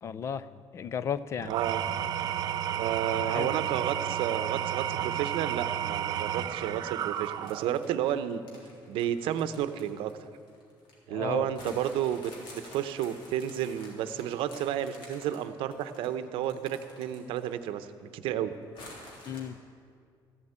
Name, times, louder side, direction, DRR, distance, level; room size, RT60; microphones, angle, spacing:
voice 1, 0.0-1.5 3.1-3.5 11.1-11.8 19.3-19.6, left 7 dB, 35° left, 15 dB, 0.4 m, -35 dB
Engine / Tools, 1.4-7.9, right 10 dB, 50° right, 0.5 m, -32 dB
voice 2, 1.5-1.8 2.8-8.4 8.9-10.3 11.1-17.9 18.1-18.5, right 10 dB, 85° right, 11 dB, 0.7 m, -31 dB
sound 1, 7.2-11.0 11.5-17.7 18.0-18.1 18.7-19.4, left 1 dB, 75° left, 3.4 m, -50 dB
14.5 x 8.0 x 8.8 m, 2.2 s
cardioid pair, 175°, 9 cm